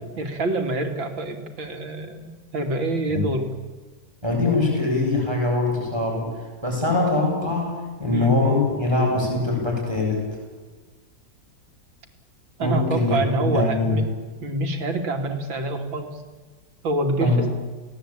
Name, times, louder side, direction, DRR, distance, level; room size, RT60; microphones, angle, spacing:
voice 1, 0.2-3.5 8.1-8.3 12.6-14.1 14.4-16.2 16.8-17.5, right 2 dB, 85° right, 5 dB, 3.5 m, -26 dB
voice 2, 4.2-6.3 6.6-10.3 12.6-14.0 17.2-17.5, left 2 dB, 10° right, -1 dB, 7.6 m, -22 dB
30.0 x 18.0 x 8.9 m, 1.4 s
omnidirectional pair, 2.1 m